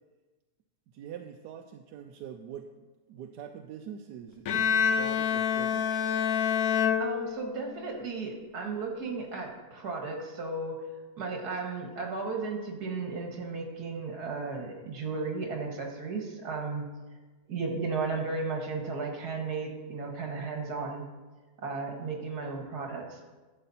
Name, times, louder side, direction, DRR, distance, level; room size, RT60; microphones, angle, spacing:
voice 1, 0.9-6.0, right 8 dB, 90° right, 4 dB, 1.2 m, -44 dB
Bowed string instrument, 4.5-7.8, left 7 dB, 70° left, 1.1 m, -27 dB
voice 2, 7.0-10.8 11.2-16.9 17.5-21.0 21.6-23.2, right 4 dB, 75° right, 1 dB, 2.2 m, -34 dB
12.0 x 7.7 x 4.2 m, 1.2 s
omnidirectional pair, 1.7 m